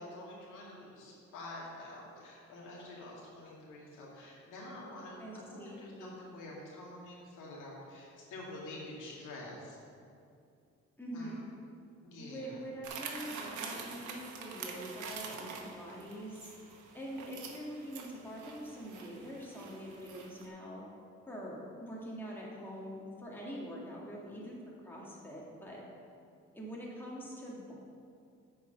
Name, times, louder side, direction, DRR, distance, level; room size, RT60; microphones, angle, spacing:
voice 1, 0.0-9.8 11.1-11.3 12.0-12.6, left 1 dB, 90° left, -4 dB, 2.1 m, -47 dB
voice 2, 5.2-6.2 11.0-11.4 12.1-16.5 16.9-20.8 21.3-24.6 24.8-25.8 26.5-27.8, equal, 5° left, -5 dB, 2.1 m, -44 dB
sound 1, 12.8-20.5, right 5 dB, 75° right, 1.1 m, -46 dB
8.8 x 4.7 x 5.8 m, 2.5 s
cardioid pair, 90°, 30 cm